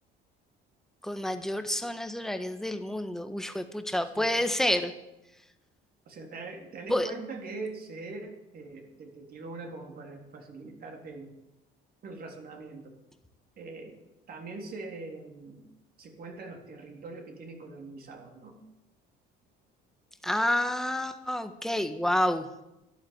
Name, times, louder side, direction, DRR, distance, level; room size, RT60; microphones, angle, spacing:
voice 1, 1.0-4.9 6.9-7.1 20.2-22.5, left 1 dB, ahead, 8 dB, 1.4 m, -29 dB
voice 2, 6.1-11.3 12.0-12.9 13.6-14.0 14.3-15.6 16.0-18.6, right 3 dB, 45° right, 2 dB, 3.4 m, -42 dB
12.5 x 11.5 x 8.9 m, 0.92 s
cardioid pair, 120°, 21 cm